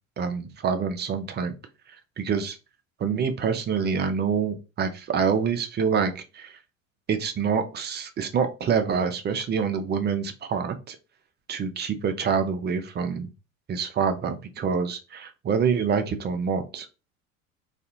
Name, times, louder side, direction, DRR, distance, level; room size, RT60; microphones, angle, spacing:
voice 1, 0.2-1.5 2.2-2.6 3.0-6.6 7.1-11.0 11.5-13.3 13.7-16.9, right 6 dB, 25° right, 7 dB, 0.5 m, -26 dB
2.4 x 2.3 x 2.8 m, 0.30 s
hypercardioid pair, 75°, 39 cm